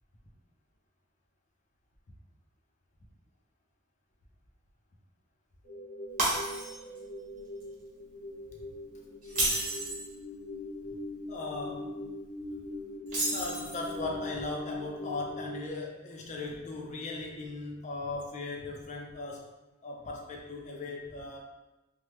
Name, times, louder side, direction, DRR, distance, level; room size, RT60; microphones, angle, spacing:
sound 1, 5.6-15.6, left 2 dB, 75° left, 0.7 m, -42 dB
Shatter, 6.2-7.0 7.4-7.6 9.2-10.1 13.1-13.9, right 2 dB, 40° right, 1.1 m, -31 dB
voice 1, 11.3-12.0 13.3-19.5 19.8-21.4, left 3 dB, 35° left, 0 dB, 0.5 m, -38 dB
3.1 x 2.1 x 3.3 m, 1.0 s
head